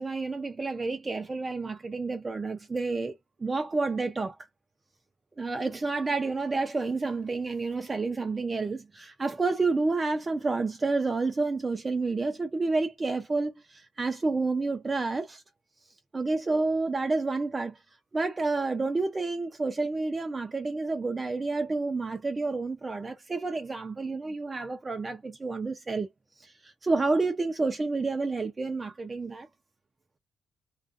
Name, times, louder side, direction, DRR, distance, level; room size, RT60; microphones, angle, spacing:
voice 1, 0.0-4.4 5.4-15.4 16.1-26.1 26.4-29.5, right 3 dB, 25° right, 0.5 m, -29 dB
2.4 x 2.3 x 2.5 m
cardioid pair, 90°, 0 cm